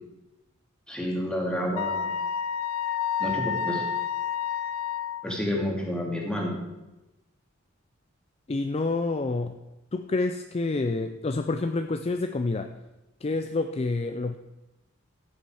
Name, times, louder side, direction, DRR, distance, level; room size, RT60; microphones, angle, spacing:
voice 1, 0.9-2.2 3.2-3.8 5.2-6.6, equal, 5° left, -2 dB, 2.4 m, -29 dB
Wind instrument woodwind instrument, 1.8-5.2, left 7 dB, 90° left, 0.6 m, -29 dB
voice 2, 8.5-9.6 9.9-12.7 13.2-14.4, left 3 dB, 30° left, 7 dB, 0.4 m, -28 dB
15.0 x 7.2 x 4.9 m, 0.99 s
head